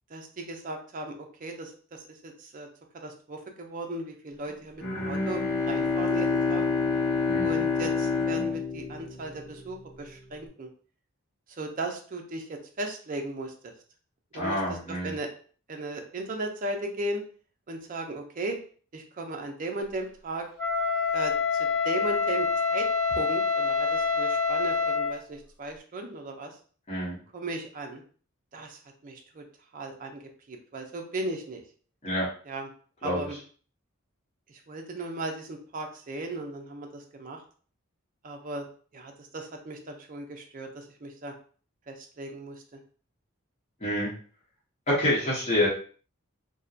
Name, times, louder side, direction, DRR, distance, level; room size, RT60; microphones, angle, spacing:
voice 1, 0.1-2.7 3.0-5.4 5.7-6.6 7.4-10.7 11.6-13.5 14.3-14.8 15.0-15.3 15.7-17.2 17.7-18.6 18.9-20.5 21.1-21.3 21.8-26.5 27.3-28.0 28.5-29.4 29.7-30.2 30.5-31.6 32.5-32.7 33.0-33.4 34.5-37.4 38.2-38.6 38.9-41.3 41.9-42.6, right 2 dB, 40° right, 3 dB, 0.5 m, -36 dB
Bowed string instrument, 4.8-9.7, left 4 dB, 70° left, 1.0 m, -27 dB
voice 2, 14.4-15.1 26.9-27.2 32.0-32.3 33.0-33.3 43.8-44.1 44.9-45.7, left 1 dB, 30° left, -7 dB, 0.9 m, -27 dB
Wind instrument woodwind instrument, 20.6-25.2, left 5 dB, 10° left, 0.7 m, -26 dB
2.7 x 2.1 x 2.3 m, 0.43 s
head